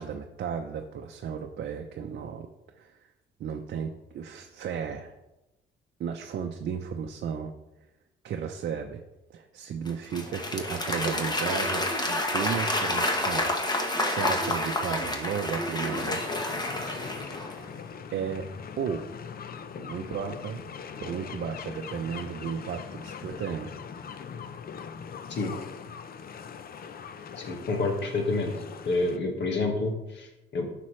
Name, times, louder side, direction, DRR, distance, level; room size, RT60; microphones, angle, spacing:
voice 1, 0.0-2.5 2.7-3.1 3.4-5.1 6.0-7.5 8.2-9.0 9.3-13.6 14.0-16.2 18.1-18.5 18.8-19.1 19.8-20.6 21.0-23.7, right 7 dB, 60° right, 3 dB, 0.6 m, -34 dB
Applause / Crowd, 9.9-17.6, left 1 dB, 20° left, 1.1 m, -29 dB
sound 1, 15.9-29.2, left 6 dB, 50° left, 0.6 m, -41 dB
voice 2, 27.4-28.5 28.8-30.7, left 3 dB, 65° left, 3 dB, 1.7 m, -28 dB
9.7 x 5.9 x 3.2 m, 0.97 s
cardioid pair, 90°, 20 cm